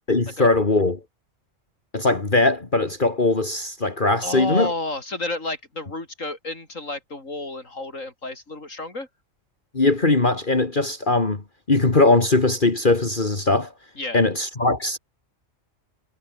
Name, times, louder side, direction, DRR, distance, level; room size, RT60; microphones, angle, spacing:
voice 1, 0.1-1.0 1.9-4.7 9.7-11.4 11.7-13.7 14.1-15.0, left 2 dB, 40° left, 2.5 m, -20 dB
voice 2, 4.2-9.1 14.0-14.2, left 2 dB, 85° left, 5.4 m, -31 dB
omnidirectional pair, 1.3 m